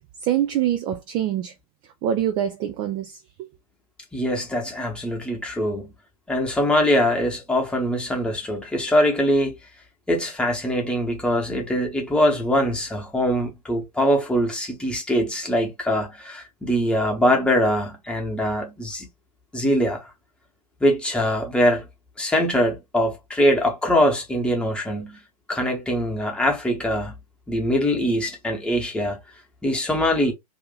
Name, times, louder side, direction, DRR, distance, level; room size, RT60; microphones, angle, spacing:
voice 1, 0.2-1.5 2.0-3.5, right 10 dB, 25° right, 0.3 m, -25 dB
voice 2, 4.1-5.9 6.3-9.5 10.1-19.1 19.5-20.1 20.8-21.8 22.2-25.2 25.5-27.1 27.5-29.2 29.6-30.3, equal, 5° left, 1.1 m, -22 dB
2.8 x 2.5 x 3.9 m
figure-of-eight pair, 100°, 20 cm